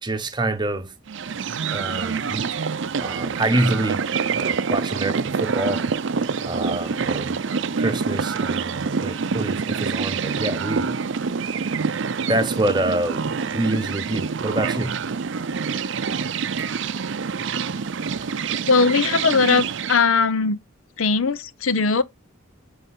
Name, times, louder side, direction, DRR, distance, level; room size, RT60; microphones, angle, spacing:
voice 1, 0.0-0.9 1.7-2.6 3.0-4.1 4.3-5.9 6.4-7.4 7.8-10.9 12.3-15.0 17.8-18.2, right 1 dB, 20° right, 1.0 m, -26 dB
sound 1, 1.1-20.0, right 5 dB, 60° right, 0.5 m, -26 dB
voice 2, 18.7-20.6 21.0-22.0, left 4 dB, 75° left, 0.7 m, -19 dB
7.7 x 3.5 x 5.4 m
head